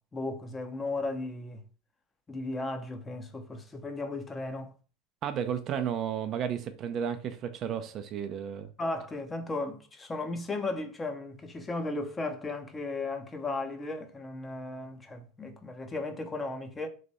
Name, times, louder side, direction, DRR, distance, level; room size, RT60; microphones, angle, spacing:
voice 1, 0.1-1.6 2.3-4.7 8.8-16.9, left 2 dB, 20° left, 0.6 m, -35 dB
voice 2, 5.2-8.7, right 8 dB, 45° right, 0.4 m, -33 dB
3.2 x 2.6 x 4.1 m
supercardioid pair, 105°, 0 cm